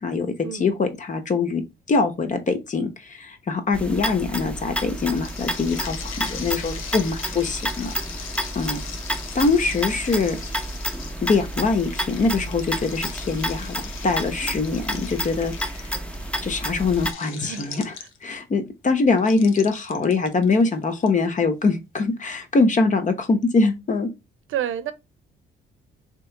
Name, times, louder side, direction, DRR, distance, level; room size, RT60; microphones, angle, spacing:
voice 1, 0.0-0.3 0.6-1.6 1.9-7.9 8.5-8.8 9.3-10.4 11.2-13.7 14.0-15.9 16.4-17.9 18.2-24.1, left 4 dB, 40° left, 0.9 m, -23 dB
sound 1, 3.7-17.1, equal, 5° left, 0.8 m, -30 dB
sound 2, 4.8-18.4 19.2-21.1, left 7 dB, 90° left, 0.8 m, -40 dB
voice 2, 24.5-24.9, right 10 dB, 80° right, 0.7 m, -29 dB
3.0 x 3.0 x 4.5 m
cardioid pair, 100°, 20 cm